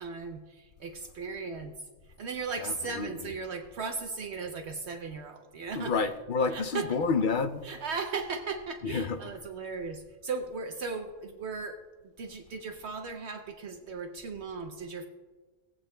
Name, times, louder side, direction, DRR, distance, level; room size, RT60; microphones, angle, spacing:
voice 1, 0.0-1.9 2.2-6.1 6.5-6.9 7.6-11.8 12.2-15.1, right 4 dB, 65° right, 0.9 m, -37 dB
voice 2, 2.6-3.3 5.7-7.6 8.8-9.4, left 4 dB, 60° left, 0.5 m, -30 dB
17.5 x 8.5 x 2.2 m
omnidirectional pair, 1.3 m